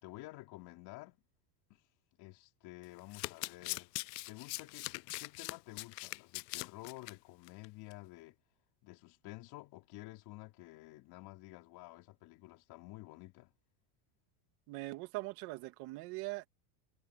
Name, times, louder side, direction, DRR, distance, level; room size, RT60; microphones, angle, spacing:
voice 1, 0.0-1.2 1.7-1.8 2.2-3.9 4.3-8.4 8.8-13.5, left 20 dB, 50° left, 4.6 m, -51 dB
Domestic sounds home sounds, 2.8-7.1 7.5-7.7 7.9-8.0, left 25 dB, 80° left, 0.6 m, -42 dB
voice 2, 14.7-16.5, right 22 dB, 50° right, 2.4 m, -41 dB
supercardioid pair, 150°, 48 cm